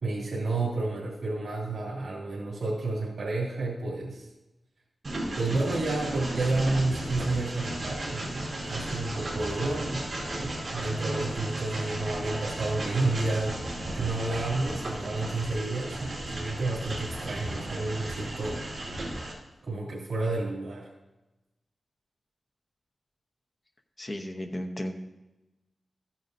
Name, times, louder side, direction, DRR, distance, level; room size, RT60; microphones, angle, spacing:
voice 1, 0.0-4.3 5.4-10.0 10.4-18.7 19.6-20.9, right 2 dB, 65° right, -7 dB, 2.5 m, -30 dB
Train, 5.0-19.3, right 1 dB, 35° right, 2.8 m, -35 dB
voice 2, 24.0-24.9, left 1 dB, 25° left, 5 dB, 0.8 m, -34 dB
14.0 x 9.2 x 2.6 m, 1.0 s
wide cardioid pair, 175°, 0 cm